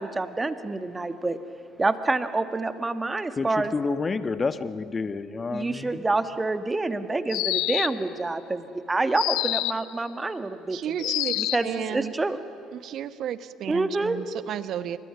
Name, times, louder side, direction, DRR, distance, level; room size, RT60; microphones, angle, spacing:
voice 1, 0.0-1.4 1.8-3.7 5.5-11.1 11.4-12.4 13.7-14.2, right 2 dB, 20° right, 10 dB, 1.7 m, -27 dB
voice 2, 3.4-6.0, left 4 dB, 30° left, 12 dB, 1.3 m, -29 dB
sound 1, 7.3-8.1 9.2-9.9 11.0-11.7, left 18 dB, 60° left, 0.6 m, -27 dB
voice 3, 10.7-12.2 12.7-15.0, right 10 dB, 50° right, 14 dB, 1.0 m, -33 dB
29.5 x 27.5 x 6.1 m, 2.4 s
figure-of-eight pair, 55°, 0 cm